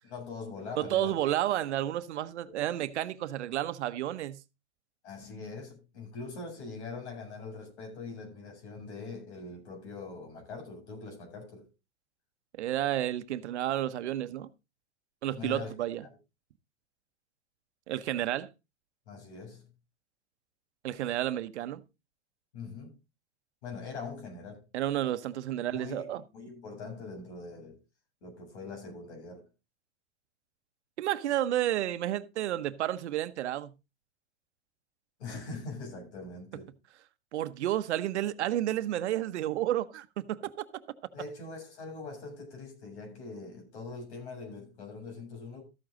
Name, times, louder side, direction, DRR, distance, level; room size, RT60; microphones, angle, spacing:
voice 1, 0.0-1.2 2.5-2.6 5.0-11.7 15.3-15.7 19.1-19.6 22.5-22.9 23.6-24.6 25.6-27.8 28.2-29.4 35.2-36.7 41.1-45.6, left 4 dB, 80° left, 7.8 m, -42 dB
voice 2, 0.8-4.4 12.6-14.5 15.2-16.0 17.9-18.5 20.8-21.8 24.7-26.2 31.0-33.7 37.3-40.8, right 12 dB, 85° right, 1.0 m, -31 dB
13.5 x 8.8 x 3.8 m
hypercardioid pair, 120°, 33 cm